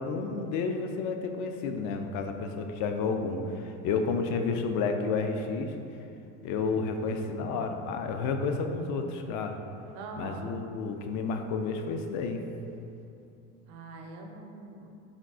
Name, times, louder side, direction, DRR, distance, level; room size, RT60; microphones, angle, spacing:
voice 1, 0.0-5.7 6.4-9.6 10.2-12.4, left 4 dB, 60° left, 5 dB, 0.4 m, -31 dB
voice 2, 9.9-10.6 13.7-14.9, right 3 dB, 75° right, 3 dB, 0.6 m, -43 dB
3.6 x 2.4 x 3.6 m, 2.7 s
supercardioid pair, 110°, 34 cm